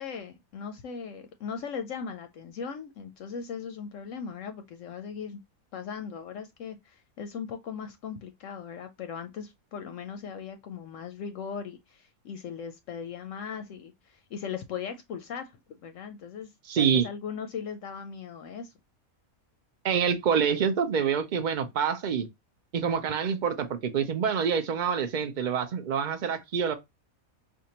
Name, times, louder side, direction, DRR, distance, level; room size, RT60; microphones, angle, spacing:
voice 1, 0.0-5.4 5.7-15.6 15.8-16.5 16.8-18.7, left 6 dB, 70° left, 0.9 m, -38 dB
voice 2, 16.7-17.1 19.8-22.3 22.7-26.7, right 7 dB, 60° right, 0.5 m, -26 dB
4.4 x 2.5 x 2.8 m
omnidirectional pair, 1.5 m